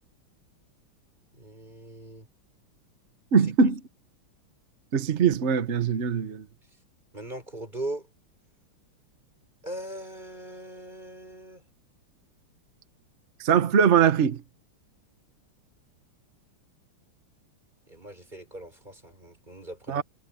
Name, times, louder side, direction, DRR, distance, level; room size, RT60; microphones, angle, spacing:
voice 1, 1.3-2.3 7.1-8.1 9.6-11.6 17.9-20.0, right 1 dB, 20° right, 6.8 m, -39 dB
voice 2, 3.3-3.8 4.9-6.4 13.4-14.4 19.9-20.0, right 6 dB, 40° right, 1.1 m, -22 dB
omnidirectional pair, 2.4 m